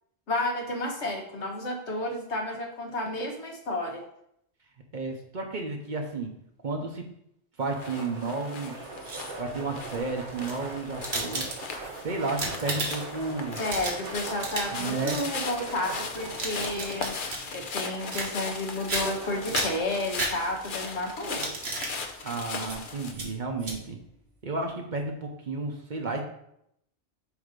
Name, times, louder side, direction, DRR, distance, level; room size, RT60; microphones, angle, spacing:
voice 1, 0.3-4.0 13.6-17.1 17.5-21.6, left 1 dB, 80° left, 2 dB, 1.4 m, -31 dB
voice 2, 4.9-6.3 6.6-7.0 7.6-8.9 9.4-11.5 12.0-13.6 14.7-15.2 22.2-24.0 24.4-26.2, right 3 dB, 45° right, 2 dB, 0.9 m, -32 dB
sound 1, 7.7-23.1, left 5 dB, 50° left, 0.8 m, -38 dB
sound 2, 7.8-17.7 18.9-19.8, right 3 dB, 85° right, 1.2 m, -42 dB
sound 3, 8.8-9.5 10.3-11.9 12.2-13.2 13.5-14.8 15.1-15.3 16.1-17.5 18.1-18.6 18.9-19.3 19.5-20.8 21.2-21.9 22.6-22.8 23.1-23.3 23.6-23.8, right 2 dB, 65° right, 1.4 m, -33 dB
8.1 x 2.8 x 5.1 m, 0.75 s
omnidirectional pair, 1.2 m